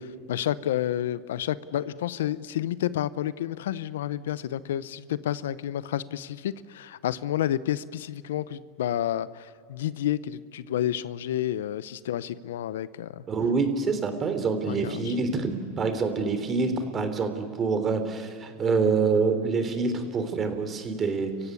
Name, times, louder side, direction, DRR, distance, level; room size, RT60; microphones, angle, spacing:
voice 1, 0.3-13.2 14.7-15.1, left 11 dB, 85° left, 17 dB, 0.7 m, -30 dB
voice 2, 13.3-21.5, right 4 dB, 30° right, 8 dB, 3.4 m, -26 dB
30.0 x 15.5 x 9.8 m, 2.3 s
supercardioid pair, 110°, 0 cm